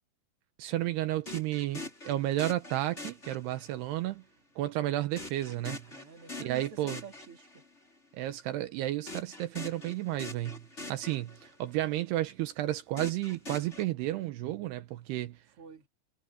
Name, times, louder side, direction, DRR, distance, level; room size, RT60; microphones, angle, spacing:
voice 1, 0.6-4.2 4.6-5.8 6.4-7.0 8.1-10.6 10.9-15.4, right 15 dB, 80° right, 2.9 m, -32 dB
sound 1, 1.3-3.9 5.2-7.8 9.1-11.7 13.0-13.8, left 2 dB, 15° left, 5.1 m, -44 dB
voice 2, 5.9-7.6 15.6-15.9, right 6 dB, 35° right, 3.5 m, -49 dB
omnidirectional pair, 4.8 m